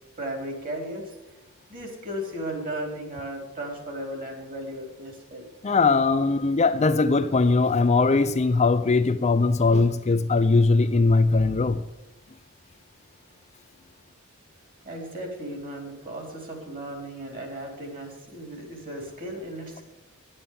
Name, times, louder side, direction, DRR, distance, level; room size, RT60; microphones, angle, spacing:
voice 1, 0.2-1.4 1.7-5.4 14.8-19.8, right 1 dB, 40° right, 3 dB, 3.8 m, -35 dB
voice 2, 5.6-11.8, left 3 dB, 30° left, 10 dB, 0.5 m, -20 dB
10.5 x 8.7 x 8.7 m, 0.98 s
head